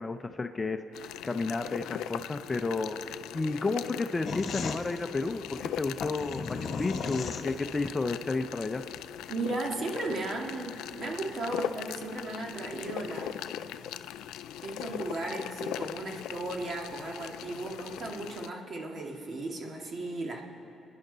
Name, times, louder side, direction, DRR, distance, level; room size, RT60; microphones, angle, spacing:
voice 1, 0.0-8.8, left 3 dB, 25° left, 8 dB, 0.6 m, -32 dB
sound 1, 0.9-18.5, left 11 dB, 90° left, 0.3 m, -40 dB
sound 2, 4.2-7.9, left 5 dB, 55° left, 1.2 m, -36 dB
voice 2, 9.3-13.4 14.6-20.4, right 2 dB, 50° right, 1 dB, 2.0 m, -35 dB
28.0 x 10.5 x 4.0 m, 2.7 s
cardioid pair, 90°, 0 cm